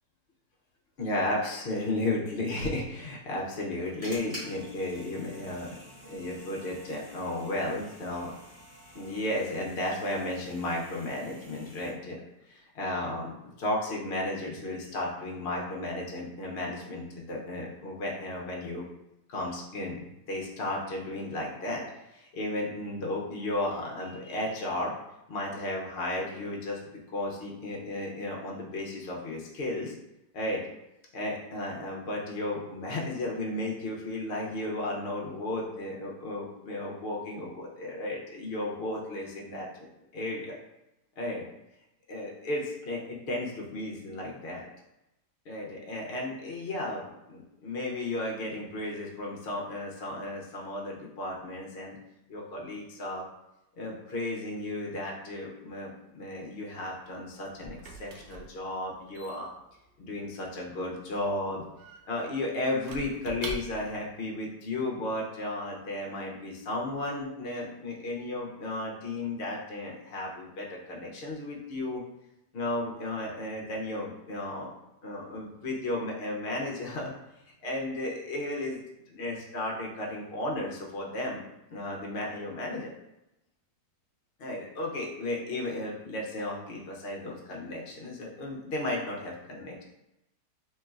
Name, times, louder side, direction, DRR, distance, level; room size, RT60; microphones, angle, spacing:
voice 1, 1.0-8.3 8.9-12.2 12.5-18.9 19.3-21.8 22.1-24.9 25.3-26.8 27.1-29.9 30.3-30.6 31.1-39.9 40.1-40.6 41.2-41.4 42.1-44.7 45.5-52.0 52.3-53.2 53.8-59.5 60.0-61.6 62.1-72.0 72.5-74.7 75.0-77.1 77.6-78.8 79.1-81.4 81.7-82.9 84.4-89.8, left 1 dB, 75° left, -2 dB, 0.5 m, -34 dB
sound 1, 3.5-11.9, equal, 30° right, 1.4 m, -49 dB
sound 2, 4.2-9.2, right 1 dB, 60° right, 1.5 m, -58 dB
Squeak / Wood, 56.9-64.1, right 3 dB, 85° right, 1.3 m, -45 dB
4.2 x 3.1 x 2.4 m, 0.90 s
omnidirectional pair, 1.9 m